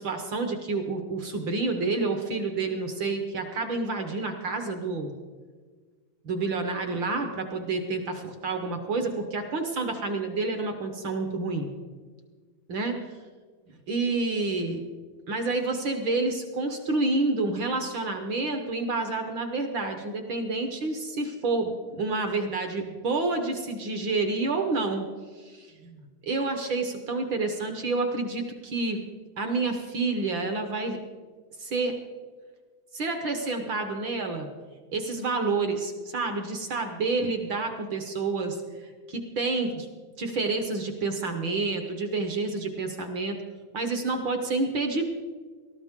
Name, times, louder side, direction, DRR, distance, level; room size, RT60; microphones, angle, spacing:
voice 1, 0.0-5.1 6.2-11.7 12.7-12.9 13.9-14.8 15.3-25.1 25.4-29.0 29.4-31.0 31.6-32.0 32.9-34.5 34.9-38.6 38.8-39.9 40.2-43.4 43.7-45.0, right 3 dB, 60° right, 5 dB, 1.2 m, -29 dB
18.0 x 13.5 x 3.7 m, 1.5 s
omnidirectional pair, 3.5 m